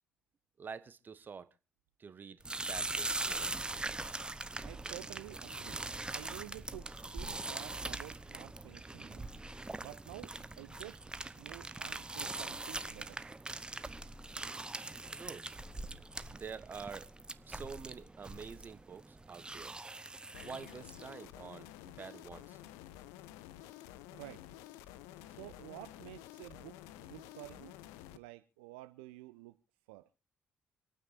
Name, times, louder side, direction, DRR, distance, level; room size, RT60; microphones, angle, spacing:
voice 1, 0.6-1.5 2.0-3.5 15.1-15.5 16.3-17.1 17.5-19.8 20.4-22.6, right 6 dB, 40° right, 1.4 m, -47 dB
sound 1, 2.4-21.1, right 2 dB, 20° right, 1.0 m, -42 dB
voice 2, 4.6-9.2 9.8-11.0 11.4-13.2 16.2-16.4 24.1-24.4 25.3-27.8 28.1-29.6 29.9-30.1, right 18 dB, 75° right, 0.6 m, -51 dB
sound 2, 20.3-28.2, left 13 dB, 70° left, 0.7 m, -51 dB
27.5 x 9.4 x 2.7 m
figure-of-eight pair, 40°, 5 cm